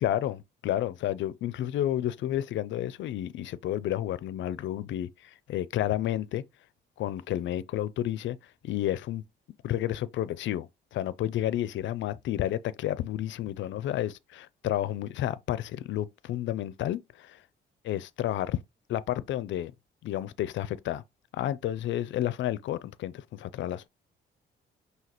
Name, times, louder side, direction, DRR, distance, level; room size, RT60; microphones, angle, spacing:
voice 1, 0.0-6.4 7.0-8.4 8.6-9.2 9.6-17.4 17.8-18.6 18.9-19.7 20.0-21.0 21.3-23.9, left 12 dB, 70° left, 0.5 m, -31 dB
5.7 x 2.8 x 3.0 m
cardioid pair, 90°, 20 cm